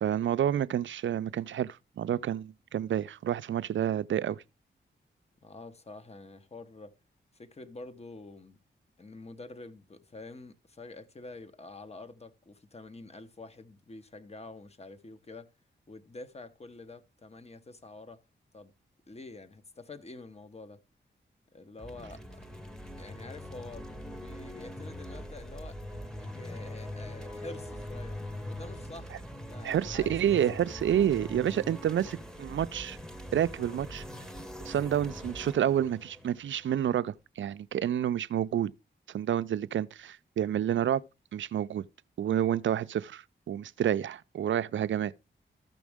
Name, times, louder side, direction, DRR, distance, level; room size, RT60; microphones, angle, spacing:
voice 1, 0.0-4.4 29.6-33.0 33.3-34.0 34.6-38.7 39.1-41.0 41.3-41.8 42.2-45.1, right 10 dB, 70° right, 0.4 m, -29 dB
voice 2, 5.4-6.9 7.3-8.6 9.0-15.5 15.9-18.2 18.5-18.7 19.1-20.8 21.5-22.5 23.0-25.8 26.2-28.2 28.5-30.6, left 2 dB, 30° left, 1.0 m, -47 dB
sound 1, 21.8-37.2, equal, 5° left, 1.1 m, -42 dB
13.5 x 6.2 x 3.5 m
cardioid pair, 70°, 20 cm